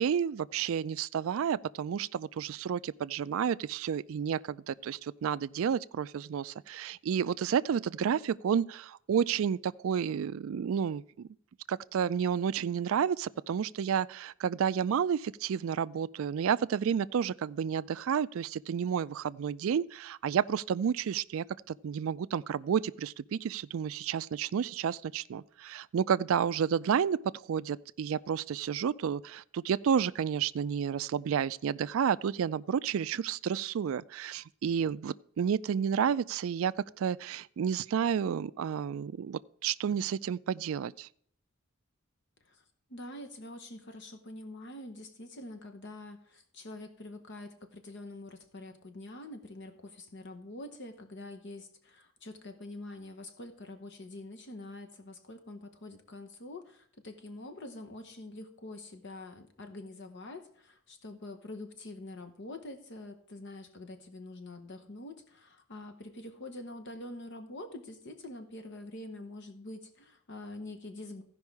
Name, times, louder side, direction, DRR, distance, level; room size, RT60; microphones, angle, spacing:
voice 1, 0.0-11.3 11.7-27.2 27.5-41.1, right 7 dB, 70° right, 0.3 m, -31 dB
voice 2, 42.9-71.2, left 2 dB, 55° left, 1.0 m, -45 dB
15.0 x 5.4 x 4.7 m
head